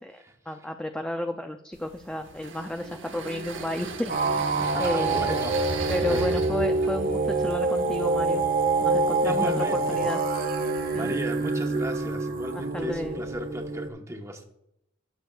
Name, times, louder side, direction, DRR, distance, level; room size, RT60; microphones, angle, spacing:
voice 1, 0.0-4.4 4.8-5.3 5.9-8.4 8.8-10.2 10.9-11.1 12.5-13.2, left 1 dB, 5° left, 6 dB, 0.3 m, -32 dB
sound 1, 1.7-12.2, right 3 dB, 65° right, 1.1 m, -38 dB
sound 2, 4.1-13.9, right 3 dB, 45° right, 0.9 m, -26 dB
voice 2, 4.6-5.7 6.1-6.4 9.2-10.1 10.7-14.4, right 1 dB, 15° right, 3 dB, 1.0 m, -35 dB
15.5 x 6.9 x 2.3 m, 0.82 s
head